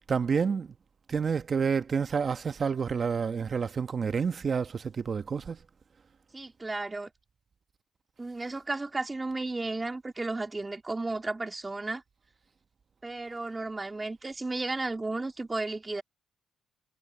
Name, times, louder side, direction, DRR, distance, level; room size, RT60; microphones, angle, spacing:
voice 1, 0.1-0.7 1.1-5.6, right 6 dB, 40° right, 1.3 m, -29 dB
voice 2, 6.3-7.1 8.2-12.0 13.0-16.0, right 2 dB, 20° right, 2.7 m, -33 dB
cardioid pair, 90°, 0 cm